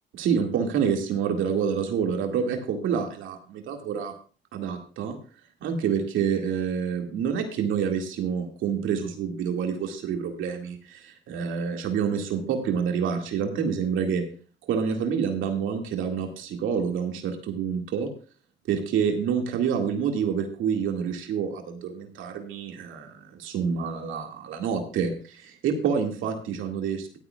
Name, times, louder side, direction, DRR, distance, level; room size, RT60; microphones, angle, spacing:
voice 1, 0.2-4.1 4.5-5.2 5.6-14.2 14.6-18.1 18.7-27.2, right 7 dB, 85° right, 3 dB, 2.1 m, -27 dB
15.0 x 12.0 x 2.4 m, 0.37 s
cardioid pair, 90°, 20 cm